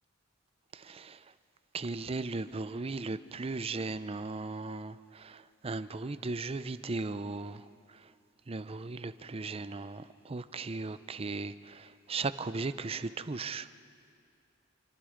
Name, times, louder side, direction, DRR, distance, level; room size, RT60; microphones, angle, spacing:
voice 1, 0.7-1.2 1.7-7.6 8.5-13.7, right 3 dB, 30° right, 14 dB, 0.5 m, -37 dB
27.0 x 25.0 x 5.1 m, 2.4 s
head